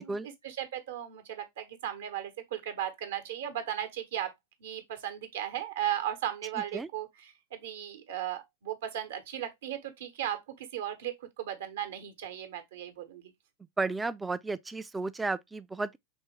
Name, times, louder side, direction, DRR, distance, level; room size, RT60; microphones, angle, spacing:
voice 1, 0.4-4.3 4.6-13.3, right 11 dB, 65° right, 0.8 m, -36 dB
voice 2, 13.8-16.0, right 3 dB, 10° right, 0.3 m, -33 dB
3.5 x 2.8 x 3.0 m
hypercardioid pair, 100°, 0 cm